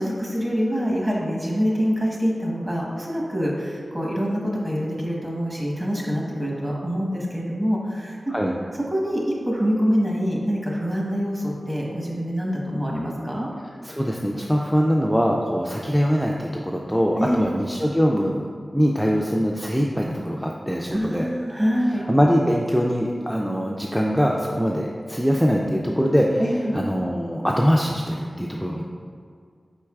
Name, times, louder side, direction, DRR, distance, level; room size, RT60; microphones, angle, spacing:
voice 1, 0.0-8.3 8.9-13.5 17.2-17.4 20.9-22.0 26.4-26.8, equal, 20° right, -3 dB, 1.1 m, -25 dB
voice 2, 13.8-18.5 18.7-21.3 22.1-26.4 26.7-28.8, equal, ahead, -1 dB, 0.3 m, -22 dB
4.6 x 4.4 x 2.3 m, 2.2 s
cardioid pair, 45°, 0 cm